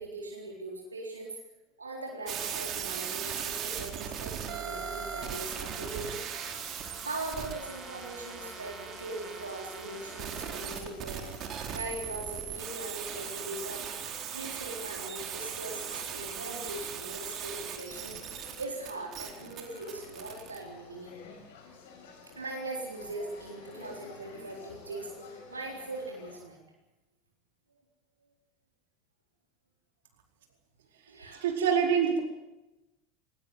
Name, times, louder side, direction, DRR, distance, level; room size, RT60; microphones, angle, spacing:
voice 1, 0.0-1.4 1.8-6.2 7.0-11.2 11.7-13.9 14.3-18.2 18.6-21.1 22.4-25.1 25.5-26.6 31.1-31.5, right 2 dB, 90° right, 0 dB, 4.0 m, -40 dB
sound 1, 2.3-20.6, right 8 dB, 45° right, 4.2 m, -39 dB
sound 2, 5.4-10.6, right 1 dB, 5° right, 7.1 m, -49 dB
sound 3, 9.8-26.4, left 5 dB, 70° left, 6.5 m, -52 dB
voice 2, 31.4-32.2, right 7 dB, 70° right, 3 dB, 4.6 m, -25 dB
21.0 x 20.0 x 7.8 m, 0.98 s
figure-of-eight pair, 80°, 0 cm